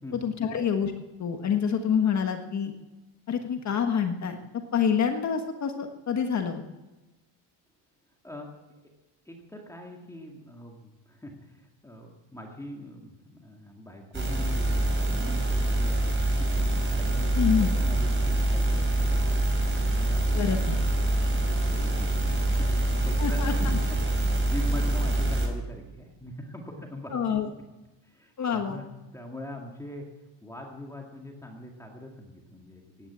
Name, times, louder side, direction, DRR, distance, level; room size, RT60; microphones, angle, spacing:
voice 1, 0.1-0.9 1.2-2.8 3.3-4.4 4.7-6.6 17.4-17.7 20.3-20.7 23.2-23.8 27.1-27.5 28.4-28.8, left 7 dB, 40° left, 5 dB, 1.5 m, -27 dB
voice 2, 9.3-16.1 16.4-21.0 21.3-21.4 21.7-27.2 28.0-28.9 29.1-30.1 30.4-33.1, left 1 dB, 5° left, 0 dB, 2.2 m, -42 dB
sound 1, 14.1-25.5, right 1 dB, 25° right, 3.7 m, -25 dB
16.5 x 10.5 x 8.3 m, 1.1 s
cardioid pair, 135°, 45 cm